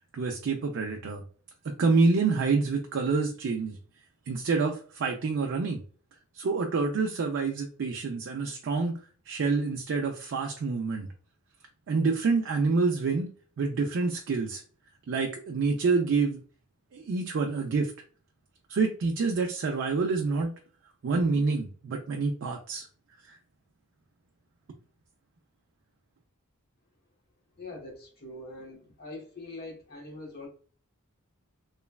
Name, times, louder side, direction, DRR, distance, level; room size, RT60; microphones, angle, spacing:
voice 1, 0.1-1.2 1.6-3.8 4.3-5.8 6.3-9.0 9.3-11.1 11.9-13.3 13.6-14.6 15.1-16.4 16.9-17.9 18.7-20.5 21.0-22.9 23.2-23.3, right 4 dB, 55° right, 3 dB, 0.4 m, -27 dB
voice 2, 27.6-30.5, left 2 dB, 45° left, -1 dB, 1.1 m, -43 dB
3.0 x 2.2 x 2.3 m, 0.41 s
head